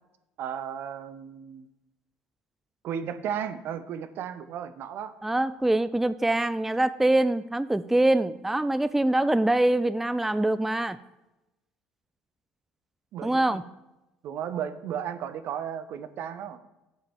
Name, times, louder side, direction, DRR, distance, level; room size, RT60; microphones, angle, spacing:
voice 1, 0.4-1.7 2.8-5.2 13.1-13.6 14.2-16.6, right 8 dB, 60° right, 13 dB, 0.6 m, -34 dB
voice 2, 5.2-11.0 13.2-13.6, right 1 dB, 5° right, 14 dB, 0.3 m, -24 dB
7.3 x 5.1 x 7.0 m, 0.98 s
hypercardioid pair, 70°, 4 cm